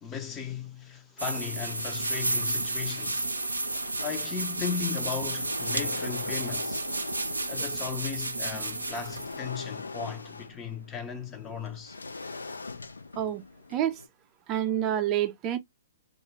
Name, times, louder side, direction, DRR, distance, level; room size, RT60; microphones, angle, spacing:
voice 1, 0.0-3.3 4.0-6.8 7.5-12.0, left 7 dB, 20° left, 0.5 m, -36 dB
sound 1, 1.2-9.4, right 2 dB, 90° right, 0.5 m, -32 dB
sound 2, 3.7-4.6 5.1-8.0 8.5-14.1, left 3 dB, 80° left, 0.3 m, -42 dB
voice 2, 14.5-15.6, right 11 dB, 30° right, 0.5 m, -27 dB
2.4 x 2.1 x 3.0 m
figure-of-eight pair, 120°, 0 cm